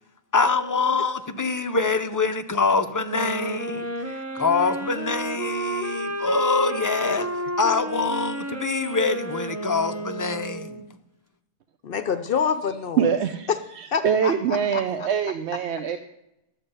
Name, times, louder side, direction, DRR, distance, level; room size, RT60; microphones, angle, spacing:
voice 1, 0.3-3.9 4.3-10.8, left 4 dB, 25° left, 0.4 m, -25 dB
sound 1, 3.0-10.9, right 1 dB, 15° right, 0.8 m, -31 dB
voice 2, 11.8-13.2 13.5-13.6 13.9-15.1, left 6 dB, 60° left, 0.8 m, -27 dB
voice 3, 13.0-13.5 13.8-16.0, right 7 dB, 80° right, 0.9 m, -24 dB
12.0 x 7.5 x 5.4 m
omnidirectional pair, 1.1 m